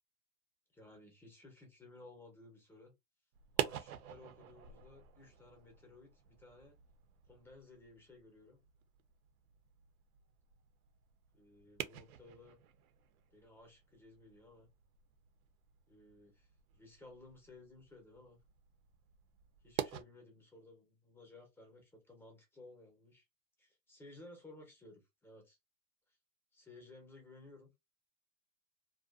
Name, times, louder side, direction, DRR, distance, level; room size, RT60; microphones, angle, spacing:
voice 1, 0.7-2.9 3.5-6.8 7.3-8.6 11.3-12.6 13.3-14.7 15.9-16.5 16.7-18.4 19.6-23.2 23.6-25.6 26.1-26.2 26.5-27.7, left 2 dB, 5° left, 1 dB, 0.5 m, -58 dB
sound 1, 3.3-20.0, right 11 dB, 85° right, 0.5 m, -47 dB
2.5 x 2.3 x 2.3 m, 0.21 s
supercardioid pair, 145°, 42 cm